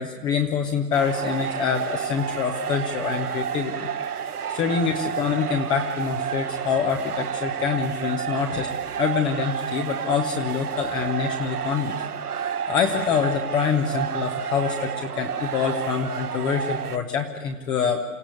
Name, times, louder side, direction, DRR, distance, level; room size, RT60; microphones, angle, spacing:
voice 1, 0.0-3.9 4.5-8.7 9.0-12.0 12.4-18.0, left 6 dB, 10° left, 4 dB, 0.6 m, -25 dB
sound 1, 0.9-17.0, right 7 dB, 80° right, 1.3 m, -30 dB
28.0 x 15.5 x 8.2 m, 1.2 s
hypercardioid pair, 140°, 45 cm